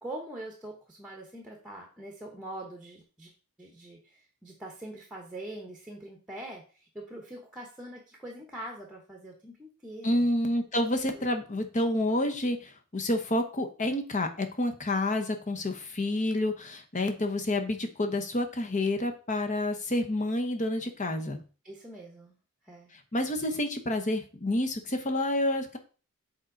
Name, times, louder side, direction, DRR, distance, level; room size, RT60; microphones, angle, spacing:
voice 1, 0.0-3.3 3.6-10.3 11.1-11.3 21.6-22.4 22.7-22.9, right 1 dB, 5° right, 1 dB, 1.1 m, -43 dB
voice 2, 10.0-21.4 23.1-25.8, left 1 dB, 35° left, 6 dB, 1.0 m, -29 dB
7.3 x 4.5 x 3.9 m, 0.36 s
head